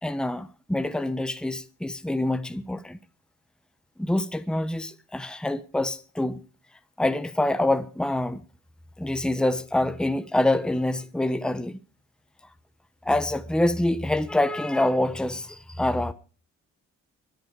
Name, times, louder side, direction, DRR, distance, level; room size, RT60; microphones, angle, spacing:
voice 1, 0.0-3.0 4.0-6.4 7.0-8.4 9.0-11.8 13.0-16.1, left 1 dB, 5° left, 1.1 m, -26 dB
23.0 x 9.8 x 4.8 m
cardioid pair, 90°, 30 cm